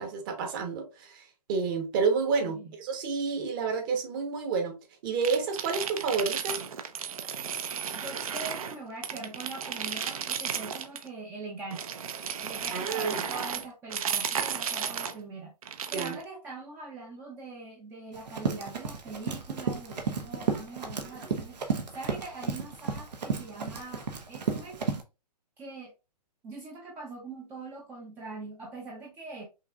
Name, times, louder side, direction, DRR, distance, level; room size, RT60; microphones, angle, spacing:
voice 1, 0.0-4.8 5.0-6.6 12.7-13.2 15.9-16.2, right 5 dB, 30° right, 1.1 m, -30 dB
voice 2, 2.4-2.7 7.9-11.8 12.4-15.5 15.9-24.8 25.6-25.9 26.4-29.4, right 3 dB, 10° right, 0.5 m, -42 dB
sound 1, 5.2-8.8 9.0-11.1 11.7-15.2 15.6-16.2, right 7 dB, 60° right, 0.7 m, -34 dB
Run, 18.1-25.0, right 5 dB, 80° right, 1.2 m, -33 dB
5.6 x 2.9 x 2.3 m
hypercardioid pair, 155°, 21 cm